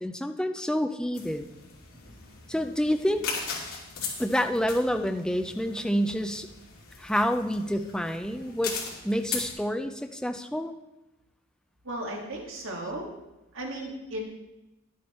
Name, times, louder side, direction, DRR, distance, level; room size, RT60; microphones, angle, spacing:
voice 1, 0.0-1.5 2.5-3.3 4.2-6.5 7.0-8.8 9.0-10.7, equal, 5° left, 7 dB, 0.5 m, -28 dB
sound 1, 1.1-9.5, left 5 dB, 75° left, 2.8 m, -39 dB
voice 2, 11.9-13.1 13.5-14.2, right 1 dB, 60° right, 0 dB, 1.9 m, -35 dB
11.0 x 8.6 x 4.3 m, 1.0 s
head